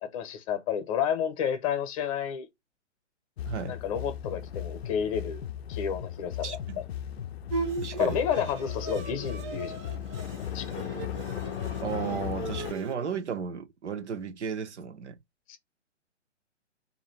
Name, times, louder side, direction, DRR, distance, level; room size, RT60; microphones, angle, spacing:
voice 1, 0.0-2.5 3.7-5.4 5.7-6.6 8.0-9.9 10.5-10.7 15.5-15.6, left 8 dB, 30° left, 0.8 m, -30 dB
sound 1, 3.4-12.7, left 10 dB, 60° left, 0.5 m, -36 dB
voice 2, 3.5-3.8 6.4-6.8 7.8-8.2 11.8-15.2, right 6 dB, 70° right, 0.9 m, -34 dB
Bowed string instrument, 7.5-13.0, right 4 dB, 25° right, 0.7 m, -38 dB
2.7 x 2.7 x 4.3 m
hypercardioid pair, 140°, 36 cm